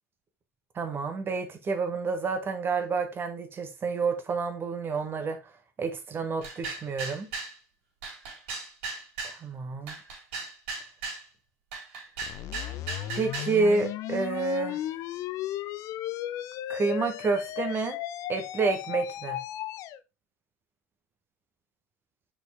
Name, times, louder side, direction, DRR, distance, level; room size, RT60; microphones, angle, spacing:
voice 1, 0.7-5.4 5.8-7.3 9.2-10.0 13.1-14.8 16.7-18.0 18.3-19.4, right 4 dB, 30° right, 1.4 m, -29 dB
sound 1, 6.4-7.5 8.0-9.4 9.9-11.2 11.7-13.6, right 4 dB, 60° right, 3.5 m, -37 dB
sound 2, 12.2-20.0, left 13 dB, 45° left, 0.4 m, -35 dB
5.8 x 5.0 x 3.5 m
figure-of-eight pair, 75°, 8 cm